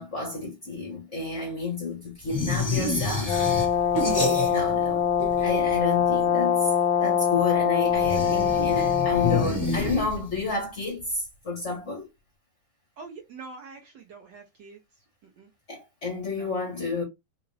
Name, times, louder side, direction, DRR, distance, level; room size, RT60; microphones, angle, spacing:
voice 1, 0.0-3.4 4.4-5.1 5.4-6.7 7.0-12.1 15.7-17.0, left 3 dB, 40° left, 1.2 m, -30 dB
sound 1, 2.3-4.9 5.1-6.0 7.9-10.5, left 3 dB, 10° left, 0.9 m, -29 dB
Brass instrument, 3.2-9.5, left 8 dB, 75° left, 1.4 m, -23 dB
voice 2, 13.0-14.8 15.2-15.5 16.3-16.5, right 4 dB, 65° right, 1.2 m, -45 dB
3.7 x 2.4 x 3.2 m
omnidirectional pair, 2.4 m